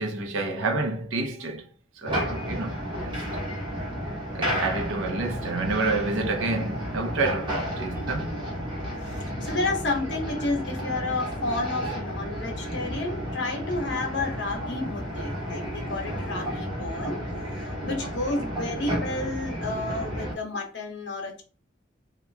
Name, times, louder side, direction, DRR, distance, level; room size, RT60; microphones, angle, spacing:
voice 1, 0.0-1.6 2.0-2.8 3.0-3.2 4.3-8.4, right 3 dB, 90° right, 0.7 m, -29 dB
sound 1, 2.1-20.3, equal, 25° right, 1.1 m, -32 dB
voice 2, 9.0-17.2 17.6-21.4, left 2 dB, 65° left, 0.9 m, -31 dB
2.9 x 2.4 x 3.3 m
head